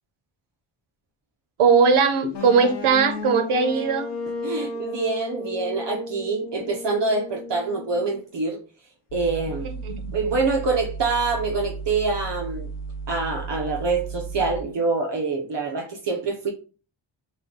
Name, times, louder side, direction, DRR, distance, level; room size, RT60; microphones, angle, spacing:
voice 1, 1.6-4.1 9.6-10.1, right 5 dB, 90° right, 0.9 m, -19 dB
sound 1, 2.3-8.2, left 2 dB, 55° left, 1.2 m, -34 dB
voice 2, 4.4-8.6 9.1-9.7 10.1-12.7 13.1-16.5, right 3 dB, 60° right, 0.9 m, -25 dB
sound 2, 9.1-14.6, right 4 dB, 85° left, 0.6 m, -34 dB
5.2 x 2.3 x 3.9 m
cardioid pair, 75°, 49 cm